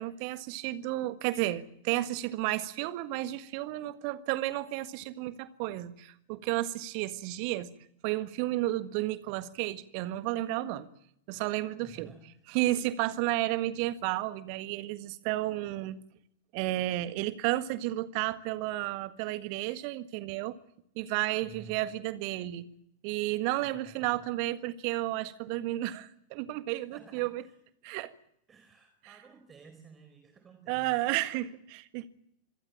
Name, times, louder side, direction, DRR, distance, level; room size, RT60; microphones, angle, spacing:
voice 1, 0.0-7.7 8.0-10.9 11.3-12.1 12.5-16.0 16.5-20.6 20.9-22.7 23.0-27.4 27.8-28.1 30.7-32.1, right 16 dB, 45° right, 12 dB, 1.6 m, -32 dB
voice 2, 11.8-12.4 21.4-21.9 23.6-24.2 26.9-27.6 28.5-31.0, right 6 dB, 20° right, 7 dB, 4.6 m, -54 dB
26.0 x 22.0 x 7.4 m, 0.72 s
figure-of-eight pair, 90°, 0 cm